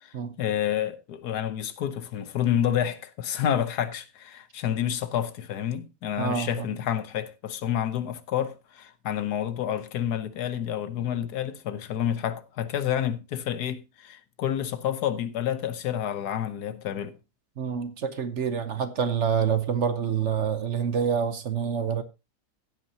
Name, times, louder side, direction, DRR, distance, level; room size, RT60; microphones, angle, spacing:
voice 1, 0.0-17.2, left 10 dB, 80° left, 1.5 m, -29 dB
voice 2, 6.2-6.7 17.6-22.0, right 7 dB, 55° right, 1.0 m, -27 dB
15.5 x 8.5 x 2.8 m
omnidirectional pair, 1.7 m